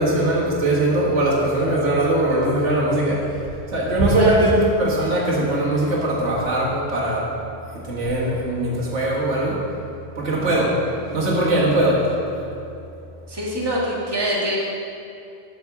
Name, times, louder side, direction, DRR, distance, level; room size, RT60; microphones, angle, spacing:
voice 1, 0.0-3.3 3.7-7.3 7.8-9.6 10.2-10.8 11.1-12.1, right 1 dB, 80° right, -4 dB, 1.9 m, -20 dB
voice 2, 13.3-14.6, equal, 20° right, -6 dB, 1.6 m, -24 dB
8.3 x 5.3 x 7.2 m, 2.7 s
omnidirectional pair, 1.2 m